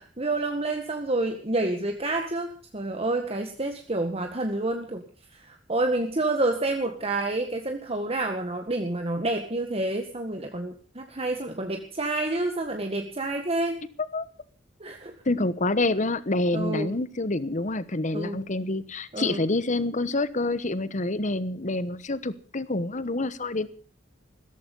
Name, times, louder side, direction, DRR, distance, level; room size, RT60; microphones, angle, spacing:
voice 1, 0.0-5.0 5.3-13.8 14.8-15.1 16.5-16.9 18.1-18.4 19.1-19.4, right 2 dB, 30° right, 4 dB, 1.8 m, -28 dB
voice 2, 15.3-23.7, left 2 dB, 40° left, 16 dB, 1.1 m, -27 dB
16.5 x 14.0 x 5.5 m, 0.41 s
head